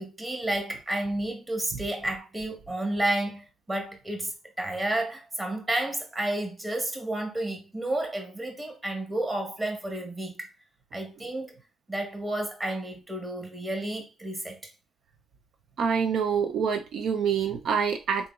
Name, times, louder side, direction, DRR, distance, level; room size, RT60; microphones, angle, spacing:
voice 1, 0.0-10.5 10.9-11.5 11.9-14.6, right 1 dB, 20° right, 1.4 m, -31 dB
voice 2, 15.8-18.3, right 6 dB, 70° right, 0.4 m, -26 dB
3.9 x 3.6 x 2.3 m
cardioid pair, 90°, 0 cm